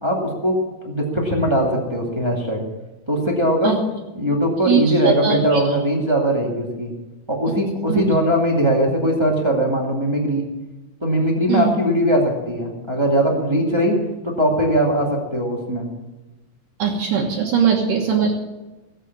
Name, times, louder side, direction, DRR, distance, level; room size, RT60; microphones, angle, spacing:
voice 1, 0.0-0.6 0.8-2.6 3.1-3.8 4.2-6.9 7.3-10.4 11.0-14.0 14.2-15.9, equal, 10° right, -2 dB, 1.5 m, -20 dB
voice 2, 4.6-5.8 7.9-8.0 11.5-11.7 16.8-18.3, right 7 dB, 65° right, -2 dB, 2.8 m, -20 dB
16.5 x 8.3 x 7.3 m, 1.1 s
omnidirectional pair, 4.5 m